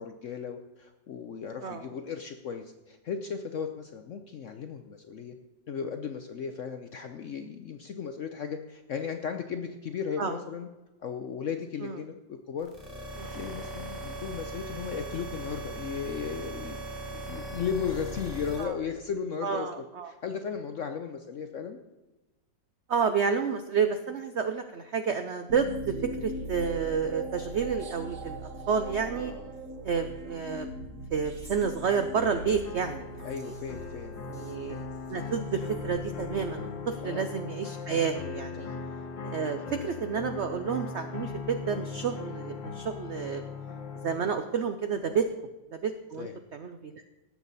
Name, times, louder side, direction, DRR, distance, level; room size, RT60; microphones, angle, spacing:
voice 1, 0.0-5.3 5.7-10.7 11.0-12.7 13.0-16.8 17.1-21.8 29.1-29.5 33.2-34.3 37.0-37.3 38.6-38.8 45.0-45.2 46.2-46.4, left 6 dB, 70° left, 7 dB, 0.7 m, -36 dB
sound 1, 12.6-18.6, right 1 dB, 30° right, 3.0 m, -39 dB
voice 2, 19.4-20.1 22.9-28.4 28.7-29.3 29.8-30.7 31.1-33.5 34.3-34.8 35.1-38.7 39.2-43.5 44.0-45.3 45.7-47.0, right 6 dB, 85° right, 8 dB, 0.6 m, -30 dB
sound 2, 25.5-37.1, right 1 dB, 50° right, 1.2 m, -41 dB
sound 3, 32.1-44.2, left 5 dB, 85° left, 1.9 m, -39 dB
17.5 x 7.2 x 4.1 m, 1.1 s
omnidirectional pair, 2.0 m